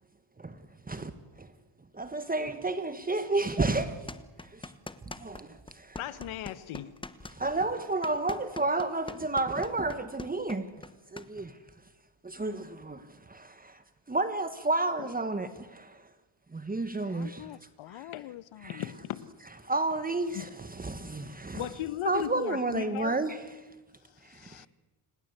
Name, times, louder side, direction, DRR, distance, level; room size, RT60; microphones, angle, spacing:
voice 1, 2.1-3.9 7.4-10.6 12.4-12.5 14.1-15.5 16.7-17.3 19.7-20.3 22.0-23.3, right 2 dB, 20° right, 1.5 m, -29 dB
sound 1, 4.1-5.4 5.7-11.3, left 2 dB, 10° left, 1.1 m, -43 dB
voice 2, 6.0-6.9 15.0-15.1 18.1-18.3 18.8-19.3 20.3-20.5 21.5-23.2, left 12 dB, 85° left, 1.3 m, -36 dB
voice 3, 17.0-18.9 24.2-24.7, left 14 dB, 70° left, 0.8 m, -47 dB
30.0 x 20.0 x 8.2 m
cardioid pair, 125°, 47 cm